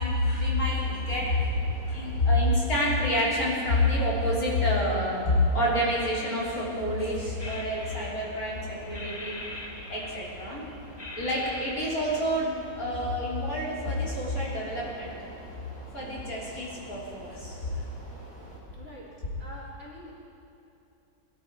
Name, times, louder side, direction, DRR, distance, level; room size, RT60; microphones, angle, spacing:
voice 1, 0.0-1.5 1.8-9.4 9.9-10.6 11.2-12.5 12.8-15.1 15.9-17.7, left 1 dB, 50° left, -6 dB, 3.8 m, -27 dB
sound 1, 0.6-18.6, equal, 20° right, 4.8 m, -46 dB
sound 2, 7.4-8.5 8.9-10.6 11.0-12.6, left 2 dB, 20° left, 0.7 m, -42 dB
voice 2, 18.7-19.1 19.4-20.1, left 1 dB, 35° right, -6 dB, 3.6 m, -45 dB
21.0 x 13.0 x 4.6 m, 2.8 s
omnidirectional pair, 2.1 m